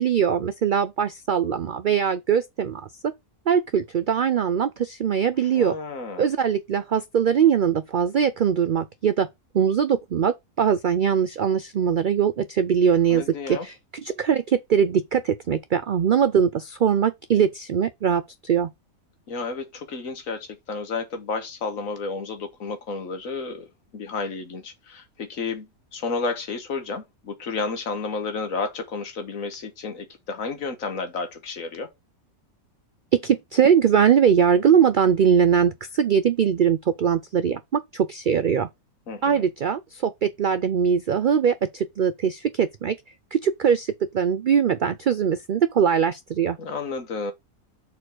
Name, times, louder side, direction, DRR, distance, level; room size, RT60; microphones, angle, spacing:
voice 1, 0.0-2.9 3.5-5.8 6.2-9.3 9.5-18.7 33.1-38.7 39.2-42.9 43.3-46.6, right 7 dB, 90° right, 0.4 m, -21 dB
voice 2, 5.4-6.3 13.1-13.7 19.3-31.9 39.1-39.4 46.6-47.3, left 4 dB, 70° left, 1.7 m, -31 dB
6.9 x 4.3 x 4.4 m
omnidirectional pair, 1.5 m